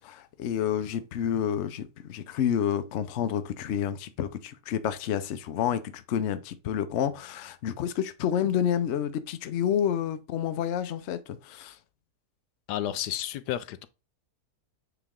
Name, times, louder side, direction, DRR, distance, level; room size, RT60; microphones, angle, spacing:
voice 1, 0.0-11.8, left 9 dB, 60° left, 0.8 m, -29 dB
voice 2, 12.7-13.9, left 12 dB, 80° left, 1.1 m, -31 dB
8.0 x 3.3 x 3.6 m
omnidirectional pair, 1.7 m